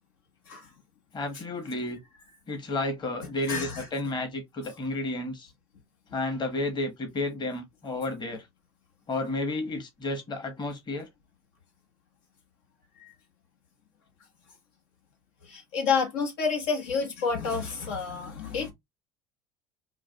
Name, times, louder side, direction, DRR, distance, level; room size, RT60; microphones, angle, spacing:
voice 1, 1.1-2.0 2.5-5.5 6.1-8.5 9.1-11.1, left 2 dB, 35° left, 1.2 m, -32 dB
voice 2, 3.5-3.9 13.0-13.1 15.4-18.7, left 5 dB, 80° left, 1.3 m, -29 dB
4.6 x 2.3 x 2.2 m
supercardioid pair, 90°, 14 cm